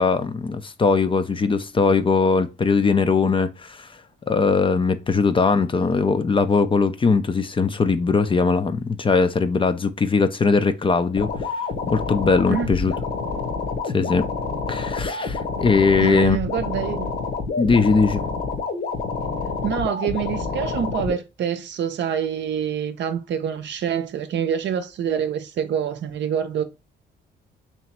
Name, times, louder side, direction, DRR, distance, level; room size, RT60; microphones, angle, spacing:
voice 1, 0.0-3.9 4.3-11.5 11.9-12.9 13.8-14.3 14.7-16.4 17.6-18.3, left 4 dB, 25° left, 0.5 m, -20 dB
sound 1, 11.2-21.2, left 4 dB, 50° left, 1.1 m, -28 dB
voice 2, 16.0-17.1 19.6-26.6, right 8 dB, 65° right, 0.7 m, -26 dB
3.1 x 3.0 x 4.3 m
cardioid pair, 90°, 20 cm